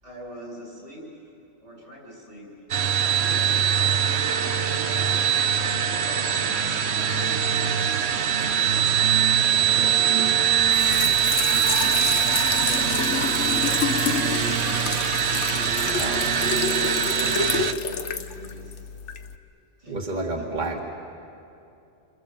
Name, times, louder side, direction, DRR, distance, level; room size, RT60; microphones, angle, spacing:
voice 1, 0.0-1.3 1.6-2.5 2.7-7.4 8.5-9.0 9.5-10.8 11.5-12.4 12.6-15.2 16.0-18.9 19.8-20.6, equal, 85° right, -3 dB, 8.6 m, -42 dB
sound 1, 2.7-17.7, right 9 dB, 70° right, 1.2 m, -22 dB
Trickle dribble / Fill (with liquid), 10.6-19.3, left 5 dB, 80° left, 1.4 m, -29 dB
voice 2, 15.9-16.2 19.9-20.8, right 2 dB, 40° right, -1 dB, 2.0 m, -30 dB
29.0 x 27.0 x 7.4 m, 2.7 s
omnidirectional pair, 1.2 m